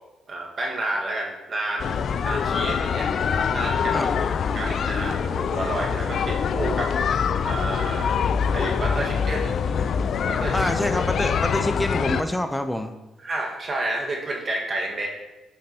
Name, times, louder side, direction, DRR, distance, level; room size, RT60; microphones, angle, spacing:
voice 1, 0.3-3.1 3.5-4.1 4.5-6.9 7.4-8.2 8.5-9.5 10.3-10.6 13.2-15.1, right 2 dB, 45° right, 0 dB, 1.5 m, -30 dB
sound 1, 1.8-12.2, left 6 dB, 60° left, 0.3 m, -24 dB
voice 2, 10.5-12.9, left 1 dB, 10° left, 8 dB, 0.5 m, -26 dB
8.3 x 5.2 x 2.8 m, 1.0 s
hypercardioid pair, 50°, 0 cm